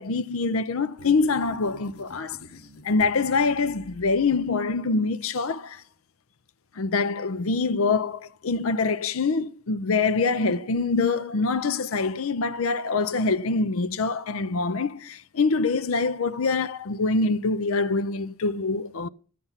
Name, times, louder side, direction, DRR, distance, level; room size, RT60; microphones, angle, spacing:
voice 1, 0.0-2.4 2.8-5.8 6.8-19.1, left 4 dB, 65° left, 0.6 m, -25 dB
sound 1, 1.0-4.7, left 1 dB, 90° left, 1.5 m, -47 dB
13.5 x 9.4 x 5.7 m
head